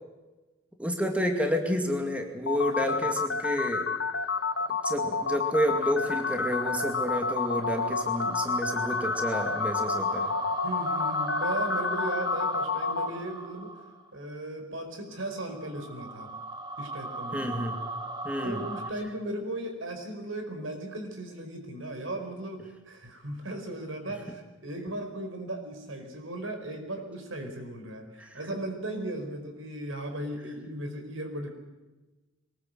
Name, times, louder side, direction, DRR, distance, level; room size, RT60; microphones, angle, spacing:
voice 1, 0.8-3.9 4.7-10.4 17.3-17.8 18.2-18.6 28.2-28.3, equal, 5° right, 3 dB, 2.3 m, -30 dB
sound 1, 2.5-13.1, left 4 dB, 65° left, 1.2 m, -29 dB
voice 2, 2.8-3.1 10.6-13.8 14.1-16.3 16.8-17.5 18.4-31.5, right 1 dB, 85° right, 5 dB, 4.9 m, -37 dB
sound 2, 4.3-14.1 15.2-18.9, right 2 dB, 25° right, 1.9 m, -37 dB
23.5 x 20.0 x 7.8 m, 1.2 s
head